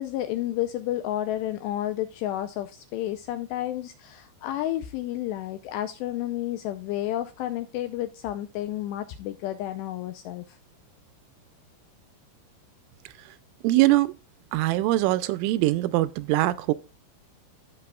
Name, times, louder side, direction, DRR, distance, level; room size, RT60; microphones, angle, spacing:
voice 1, 0.0-10.6, left 13 dB, 85° left, 2.5 m, -31 dB
voice 2, 13.6-14.1 14.5-16.7, right 17 dB, 85° right, 3.0 m, -22 dB
15.5 x 6.0 x 2.4 m
omnidirectional pair, 5.5 m